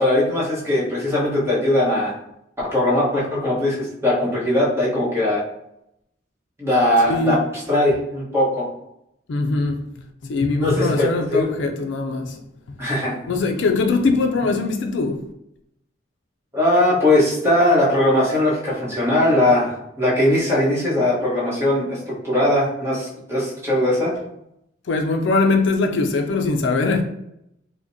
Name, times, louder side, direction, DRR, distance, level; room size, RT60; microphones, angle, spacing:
voice 1, 0.0-2.1 2.6-5.4 6.6-7.4 7.7-8.7 10.5-11.6 12.8-13.2 16.5-24.1, left 1 dB, 15° right, 1.2 m, -20 dB
voice 2, 7.1-7.4 9.3-9.8 10.2-12.8 13.3-15.3 24.9-27.0, left 3 dB, 65° left, 0.4 m, -21 dB
4.8 x 2.2 x 2.7 m
head